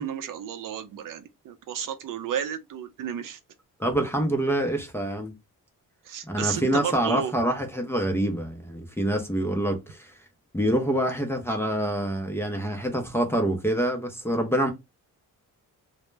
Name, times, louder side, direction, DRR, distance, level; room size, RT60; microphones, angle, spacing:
voice 1, 0.0-3.4 6.1-7.3, right 8 dB, 75° right, 0.5 m, -32 dB
voice 2, 3.8-5.3 6.3-10.1 10.5-14.7, right 1 dB, 10° left, 0.4 m, -26 dB
2.1 x 2.0 x 3.1 m
wide cardioid pair, 140°, 33 cm